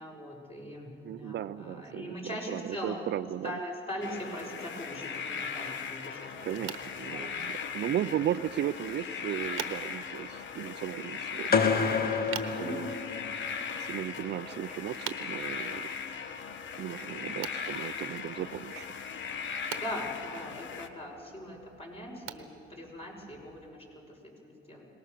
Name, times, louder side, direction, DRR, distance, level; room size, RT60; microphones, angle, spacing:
voice 1, 0.0-3.1 3.4-6.8 7.1-7.3 7.6-7.7 12.5-13.1 17.0-17.3 19.5-24.9, left 1 dB, 30° left, -1 dB, 5.8 m, -41 dB
voice 2, 1.0-2.2 2.5-3.6 6.4-11.7 12.6-12.9 13.8-15.9 16.8-18.9, right 11 dB, 60° right, 15 dB, 0.5 m, -35 dB
sound 1, 4.0-20.9, left 6 dB, 70° left, 1.3 m, -38 dB
sound 2, 6.4-23.7, right 11 dB, 85° right, 1.2 m, -48 dB
sound 3, 11.5-13.6, left 5 dB, 50° left, 1.3 m, -28 dB
23.5 x 19.5 x 6.7 m, 2.7 s
cardioid pair, 90°, 20 cm